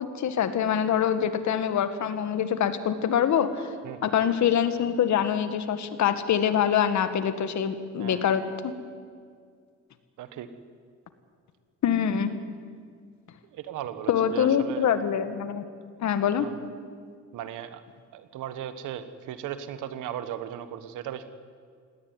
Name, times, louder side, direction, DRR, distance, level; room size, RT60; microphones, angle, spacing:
voice 1, 0.0-3.7 4.0-8.7 11.8-12.3 14.1-15.6 16.0-16.5, left 8 dB, 65° left, 11 dB, 1.8 m, -25 dB
voice 2, 3.8-4.3 8.0-8.3 10.2-10.5 13.5-14.9 16.4-16.5 17.3-17.8 18.1-21.3, right 10 dB, 90° right, 11 dB, 1.5 m, -37 dB
18.5 x 17.5 x 9.7 m, 2.1 s
cardioid pair, 90°, 30 cm